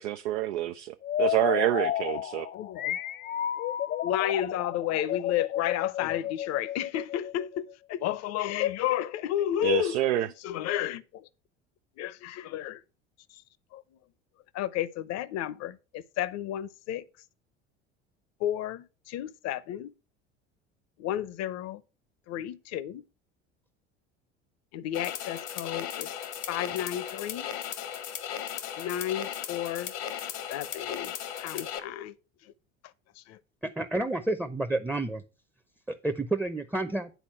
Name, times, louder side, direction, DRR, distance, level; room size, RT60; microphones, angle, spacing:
voice 1, 0.0-2.5 9.6-10.3, right 14 dB, 75° right, 0.5 m, -27 dB
sound 1, 1.0-7.7, left 11 dB, 30° left, 0.4 m, -32 dB
voice 2, 2.5-3.0 4.0-10.0 10.4-11.3 12.0-12.8 13.3-13.4 13.7-13.8 14.5-17.0 18.4-19.9 21.0-21.8 22.3-23.0 24.7-26.1 26.5-27.5 28.8-29.9 30.5-31.1 31.4-32.1 33.2-33.4, left 12 dB, 50° left, 0.8 m, -32 dB
sound 2, 24.9-31.8, left 9 dB, 75° left, 1.2 m, -36 dB
voice 3, 33.6-35.2 35.9-37.1, right 2 dB, 5° right, 0.7 m, -30 dB
9.2 x 4.2 x 5.7 m
hypercardioid pair, 70°, 33 cm